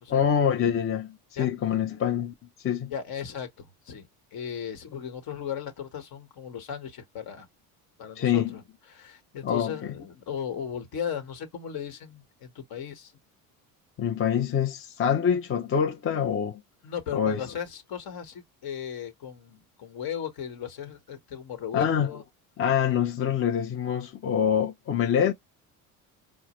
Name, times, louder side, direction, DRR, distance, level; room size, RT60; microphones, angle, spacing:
voice 1, 0.1-2.3 2.6-2.9 8.2-8.5 9.4-9.9 14.0-16.6 17.1-17.4 21.7-22.1 22.6-25.3, left 8 dB, 30° left, 0.6 m, -25 dB
voice 2, 2.9-7.5 8.0-8.6 8.9-13.1 16.8-22.2, left 8 dB, 55° left, 1.4 m, -36 dB
4.5 x 2.1 x 3.0 m
supercardioid pair, 80°, 43 cm